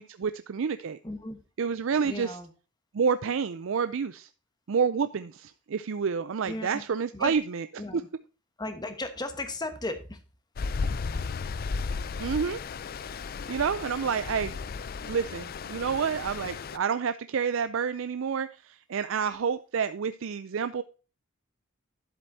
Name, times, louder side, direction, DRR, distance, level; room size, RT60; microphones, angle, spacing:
voice 1, 0.0-1.0 1.6-2.4 2.9-4.3 4.7-7.6 12.2-12.6 13.5-14.5 15.0-20.8, right 6 dB, 65° right, 12 dB, 0.4 m, -29 dB
voice 2, 1.0-1.4 2.0-2.5 6.4-6.8 7.1-7.3 7.8-8.1 8.6-10.2, left 2 dB, 20° left, 8 dB, 1.2 m, -35 dB
Stream, 10.6-16.8, left 4 dB, 45° left, 0.4 m, -34 dB
11.0 x 7.6 x 2.7 m, 0.34 s
head